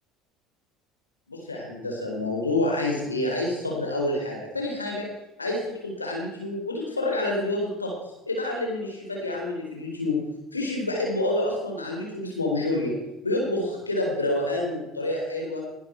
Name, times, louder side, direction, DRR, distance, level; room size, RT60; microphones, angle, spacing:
voice 1, 1.3-5.1 5.4-7.9 8.3-10.2 10.5-13.0 13.2-15.6, left 2 dB, 90° left, 0 dB, 4.1 m, -28 dB
20.5 x 10.5 x 4.6 m, 0.96 s
figure-of-eight pair, 65°, 0 cm